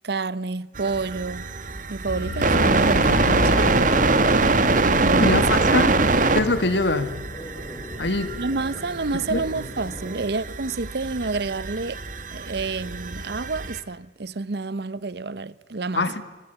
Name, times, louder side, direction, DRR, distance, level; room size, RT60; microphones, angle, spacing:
voice 1, 0.0-1.5 1.9-3.8 5.0-5.5 5.9-6.1 8.4-12.0 12.3-16.1, right 3 dB, 65° right, 0.8 m, -29 dB
sound 1, 0.7-13.8, right 3 dB, 50° right, 1.5 m, -24 dB
sound 2, 2.1-6.7, left 2 dB, 60° left, 1.0 m, -30 dB
sound 3, 3.2-10.2, equal, 20° left, 5.3 m, -37 dB
voice 2, 5.1-5.9 6.4-7.1 8.0-8.3 9.3-9.4 16.0-16.2, left 2 dB, 80° left, 2.0 m, -23 dB
26.0 x 25.0 x 8.2 m
head